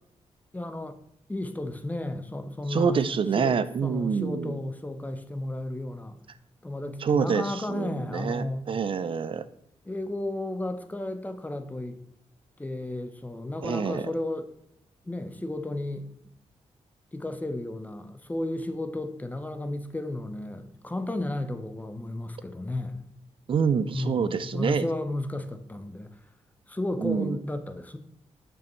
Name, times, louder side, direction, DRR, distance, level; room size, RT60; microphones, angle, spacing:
voice 1, 0.5-1.0 1.3-3.0 3.3-3.6 3.8-6.2 6.6-8.7 9.9-12.0 12.6-14.5 15.0-16.1 17.1-23.1 23.9-26.2 26.7-28.0, left 1 dB, 15° left, 0.6 m, -33 dB
voice 2, 2.7-4.6 7.0-9.5 13.6-14.0 23.5-24.9 27.0-27.4, right 6 dB, 50° right, 0.4 m, -26 dB
6.9 x 5.3 x 3.1 m
cardioid pair, 90°, 12 cm